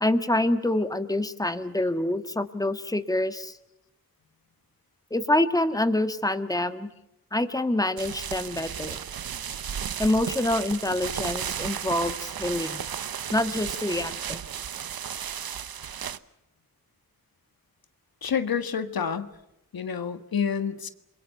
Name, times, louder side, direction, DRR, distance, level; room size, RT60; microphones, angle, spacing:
voice 1, 0.0-3.6 5.1-6.9 7.3-9.0 10.0-12.8 13.3-14.4, left 1 dB, 10° left, 9 dB, 1.7 m, -26 dB
sound 1, 8.0-16.2, right 8 dB, 85° right, 1.0 m, -34 dB
voice 2, 18.2-19.3 19.7-20.9, left 7 dB, 85° left, 10 dB, 1.6 m, -28 dB
29.0 x 22.5 x 6.7 m, 0.86 s
wide cardioid pair, 70°, 35 cm